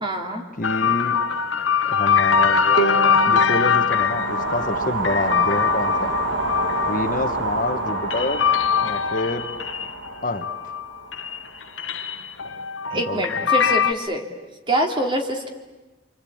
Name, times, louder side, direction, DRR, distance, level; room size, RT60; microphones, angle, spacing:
voice 1, 0.0-0.4 12.9-14.2 14.7-15.5, right 1 dB, 25° right, 3 dB, 2.9 m, -25 dB
sound 1, 0.6-10.9 11.1-13.9, left 7 dB, 80° left, 1.2 m, -22 dB
voice 2, 0.6-1.2 1.8-6.2 6.9-8.4 8.8-9.5 10.2-10.5 12.9-13.2, left 2 dB, 45° left, 8 dB, 1.2 m, -27 dB
Bowed string instrument, 2.8-5.8, right 4 dB, 60° right, 2.2 m, -30 dB
sound 2, 3.6-11.8, right 2 dB, 75° right, 2.5 m, -28 dB
27.5 x 25.0 x 8.7 m, 1.2 s
head